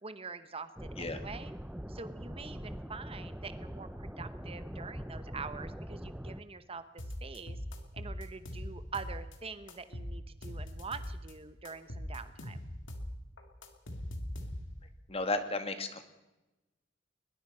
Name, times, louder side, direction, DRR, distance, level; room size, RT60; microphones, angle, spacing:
voice 1, 0.0-1.5 1.9-6.8 7.2-7.6 7.9-12.6, right 4 dB, 30° right, 12 dB, 1.0 m, -45 dB
sound 1, 0.8-6.4, equal, 5° right, 0.6 m, -43 dB
sound 2, 7.0-9.4 9.7-11.3 11.7-14.9, left 1 dB, 75° left, 2.9 m, -41 dB
voice 2, 15.1-16.0, left 2 dB, 30° left, 8 dB, 2.1 m, -33 dB
21.5 x 21.5 x 5.6 m, 1.0 s
head